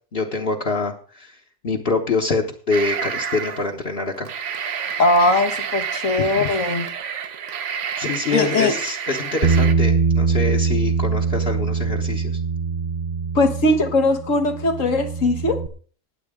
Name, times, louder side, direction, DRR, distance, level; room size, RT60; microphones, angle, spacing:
voice 1, 0.1-1.3 1.6-4.3 6.4-6.5 8.0-12.4, left 3 dB, 50° left, -1 dB, 1.3 m, -25 dB
sound 1, 2.7-3.7 4.1-9.7, right 7 dB, 70° right, 1.1 m, -29 dB
voice 2, 5.0-6.9 8.3-8.8 13.4-15.6, left 2 dB, 85° left, 5 dB, 1.7 m, -19 dB
Bass guitar, 9.4-15.7, right 5 dB, 40° right, 0.7 m, -22 dB
19.5 x 7.9 x 3.6 m, 0.42 s
omnidirectional pair, 1.3 m